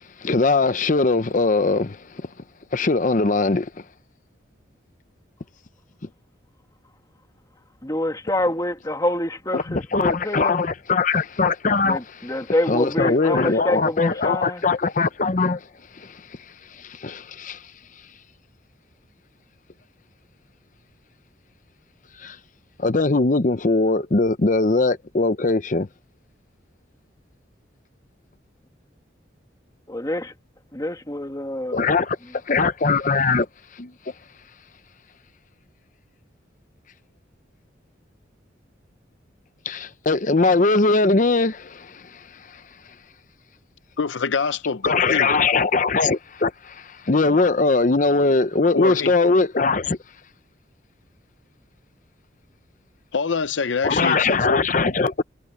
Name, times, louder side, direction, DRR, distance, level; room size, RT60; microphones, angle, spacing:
voice 1, 0.0-2.3 2.7-3.7 9.5-15.7 15.9-17.7 22.2-22.4 22.8-25.9 31.7-33.5 33.7-33.9 39.6-42.6 44.8-50.0 53.8-55.2, left 3 dB, 45° left, 0.7 m, -21 dB
voice 2, 7.8-10.6 11.9-14.6 29.9-30.3 30.7-31.8, left 1 dB, 20° left, 2.1 m, -26 dB
voice 3, 44.0-45.6 48.7-49.1 53.1-54.6, left 5 dB, 80° left, 0.7 m, -25 dB
head